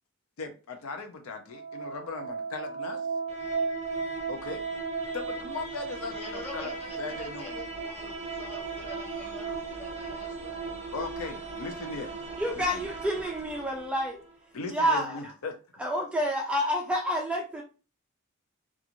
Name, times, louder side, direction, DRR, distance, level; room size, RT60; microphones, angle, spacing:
voice 1, 0.4-3.0 4.3-4.7 5.1-6.7 7.0-7.5 10.9-12.1 12.6-12.8 14.5-15.5, left 4 dB, 75° left, 0.5 m, -38 dB
sound 1, 1.4-14.3, right 4 dB, 30° right, 0.7 m, -36 dB
voice 2, 6.0-10.5, left 1 dB, 30° left, 1.1 m, -45 dB
voice 3, 12.4-14.2 14.7-15.2 15.8-17.6, equal, 5° right, 0.3 m, -28 dB
2.5 x 2.3 x 2.9 m
head